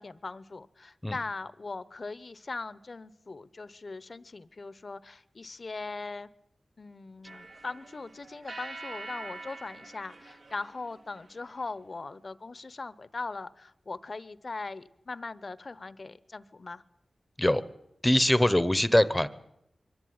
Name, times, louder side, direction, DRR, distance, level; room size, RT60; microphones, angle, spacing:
voice 1, 0.0-6.3 6.8-16.8, left 3 dB, 50° left, 16 dB, 0.9 m, -40 dB
sound 1, 7.2-11.5, right 2 dB, 75° right, 3.0 m, -45 dB
voice 2, 18.0-19.3, left 1 dB, 10° left, 15 dB, 1.0 m, -22 dB
23.0 x 14.5 x 9.6 m, 0.83 s
wide cardioid pair, 75°, 0 cm